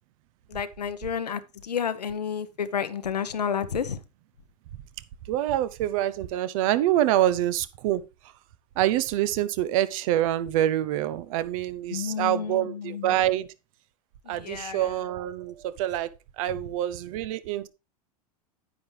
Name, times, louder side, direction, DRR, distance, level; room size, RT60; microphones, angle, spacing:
voice 1, 0.5-4.0 11.9-13.2 14.2-14.9, left 7 dB, 90° left, 1.0 m, -31 dB
voice 2, 5.3-8.0 8.8-13.5 14.3-17.7, right 13 dB, 55° right, 0.9 m, -26 dB
9.6 x 8.9 x 3.3 m
hypercardioid pair, 100°, 20 cm